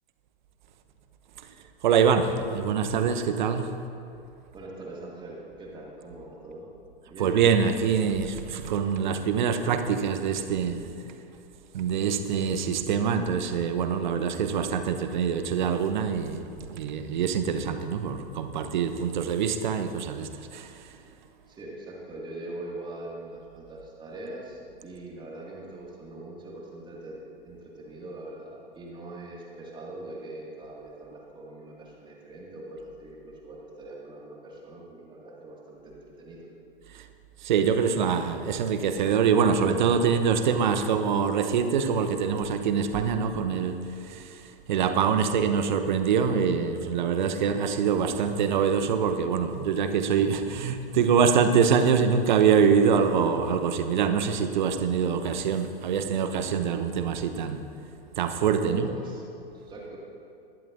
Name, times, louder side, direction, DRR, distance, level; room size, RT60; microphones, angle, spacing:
voice 1, 1.8-3.7 7.2-10.9 11.7-20.7 36.9-37.0 37.4-43.8 44.1-44.4 44.7-57.6 58.2-58.9, right 6 dB, 55° right, 8 dB, 1.0 m, -24 dB
voice 2, 4.5-6.7 7.1-7.3 21.5-36.5 58.6-59.2 59.5-60.0, right 2 dB, 15° right, -3 dB, 2.2 m, -42 dB
20.0 x 12.0 x 2.6 m, 2.5 s
figure-of-eight pair, 100°, 29 cm